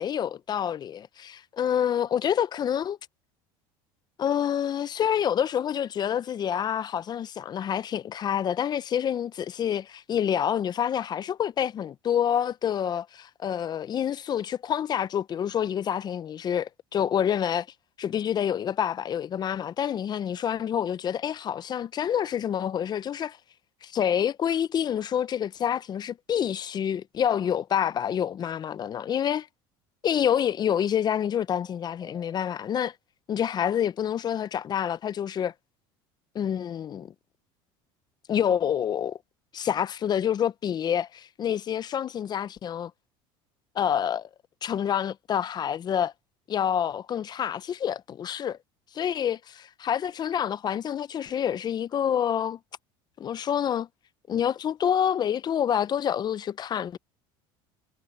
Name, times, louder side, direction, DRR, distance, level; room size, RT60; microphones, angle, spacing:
voice 1, 0.0-3.0 4.2-17.7 18.0-23.4 23.8-29.5 30.0-32.9 33.3-35.5 36.3-37.1 38.3-39.2 39.5-42.9 43.7-44.3 44.6-46.1 46.5-48.6 48.9-49.4 49.8-52.6 53.2-53.9 54.3-57.0, left 9 dB, 35° left, 0.7 m, -27 dB
sound 1, 30.8-32.9, equal, ahead, 5.7 m, -58 dB
supercardioid pair, 110°, 12 cm